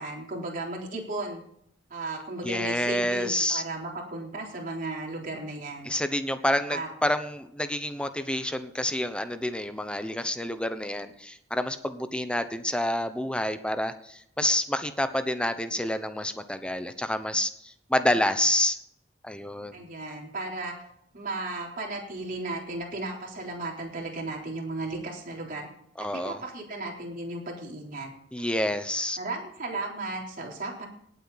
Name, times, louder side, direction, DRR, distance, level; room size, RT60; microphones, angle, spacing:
voice 1, 0.0-1.4 1.9-5.9 6.7-6.9 19.7-20.8 21.1-25.7 26.0-28.1 28.4-28.7 29.2-30.9, right 2 dB, 50° right, -1 dB, 3.8 m, -35 dB
voice 2, 2.4-3.6 5.8-18.8 19.2-19.9 26.0-26.4 28.3-29.2, left 1 dB, 5° left, 10 dB, 0.9 m, -28 dB
18.5 x 8.3 x 4.2 m, 0.70 s
head